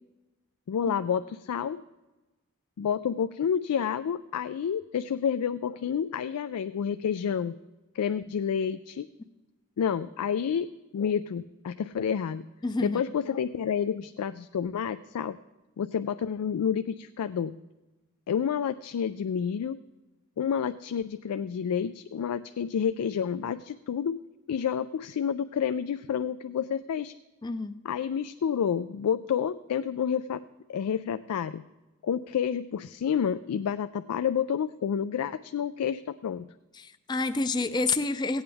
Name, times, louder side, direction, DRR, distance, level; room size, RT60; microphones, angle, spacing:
voice 1, 0.7-1.8 2.8-7.5 7.9-9.1 9.8-12.4 12.8-15.4 15.8-17.6 18.3-19.8 20.4-24.2 24.5-27.1 27.9-30.4 30.7-31.6 32.0-36.5, left 7 dB, 85° left, 11 dB, 0.3 m, -29 dB
voice 2, 12.6-13.0 27.4-27.8 36.7-38.4, left 3 dB, 20° left, 10 dB, 0.4 m, -29 dB
16.5 x 8.8 x 3.4 m, 1.1 s
head